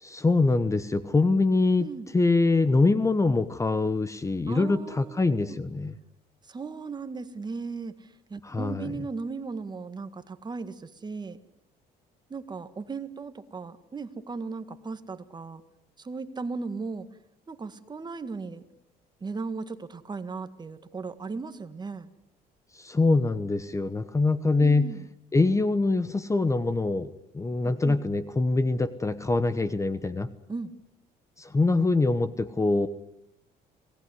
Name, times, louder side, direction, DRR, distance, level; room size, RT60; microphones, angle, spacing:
voice 1, 0.0-1.9 2.1-5.9 8.4-8.9 22.7-24.9 25.3-30.3 31.4-32.9, left 3 dB, 15° left, 14 dB, 1.1 m, -24 dB
voice 2, 4.5-5.6 6.4-11.4 12.3-15.6 16.0-17.1 17.5-18.6 19.2-22.1 24.6-25.1 27.6-28.0 30.5-30.7, right 4 dB, 25° right, 11 dB, 1.8 m, -37 dB
26.5 x 18.5 x 9.8 m, 0.82 s
cardioid pair, 110°, 17 cm